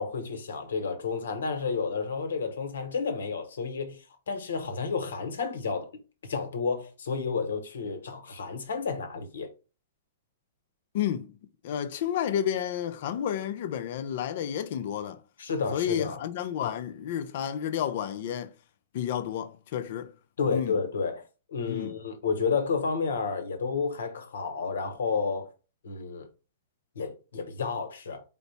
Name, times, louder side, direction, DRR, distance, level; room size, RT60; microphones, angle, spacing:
voice 1, 0.0-5.9 6.2-9.5 15.4-16.2 20.4-21.2 21.5-25.5 25.8-26.3 27.0-28.2, left 5 dB, 85° left, 1.1 m, -31 dB
voice 2, 10.9-11.4 11.6-15.2 15.7-18.5 18.9-20.1 20.5-20.7 21.7-21.9, left 10 dB, 60° left, 0.5 m, -31 dB
4.1 x 2.1 x 4.1 m
hypercardioid pair, 135°, 0 cm